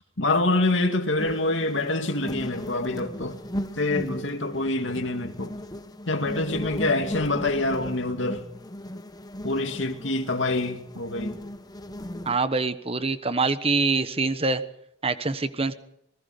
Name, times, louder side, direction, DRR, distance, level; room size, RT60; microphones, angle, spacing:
voice 1, 0.2-3.4 3.8-5.5 6.1-8.4 9.4-11.4, left 2 dB, 70° left, 2.5 m, -26 dB
sound 1, 1.2-12.4, left 1 dB, 20° left, 1.1 m, -36 dB
voice 2, 12.3-14.6 15.0-15.7, right 3 dB, 30° right, 1.3 m, -25 dB
27.0 x 20.0 x 5.2 m
head